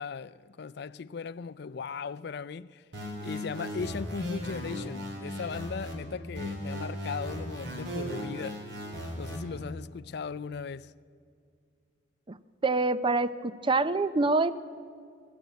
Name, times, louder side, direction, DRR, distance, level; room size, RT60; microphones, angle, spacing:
voice 1, 0.0-2.7 3.2-8.7 9.2-10.9, left 5 dB, 60° left, 0.4 m, -38 dB
sound 1, 2.9-5.9 6.3-9.4, equal, 70° right, 3.7 m, -37 dB
voice 2, 12.6-14.5, right 3 dB, 25° right, 0.5 m, -26 dB
21.0 x 13.5 x 9.3 m
head